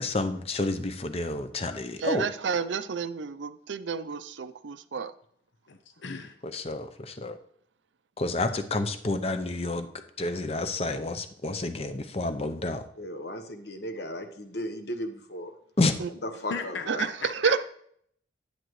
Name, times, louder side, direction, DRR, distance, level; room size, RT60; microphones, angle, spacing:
voice 1, 0.0-2.3 6.4-7.4 8.2-9.9 10.2-12.8 15.8-15.9, left 2 dB, 35° left, 0.7 m, -29 dB
voice 2, 2.0-5.1 16.0-16.1 16.9-17.0 17.4-17.7, right 6 dB, 85° right, 0.5 m, -30 dB
voice 3, 5.7-6.4 16.5-17.7, left 5 dB, 85° left, 0.7 m, -37 dB
voice 4, 13.0-15.5 16.2-17.0, left 1 dB, 60° left, 1.1 m, -36 dB
10.5 x 10.0 x 3.2 m
head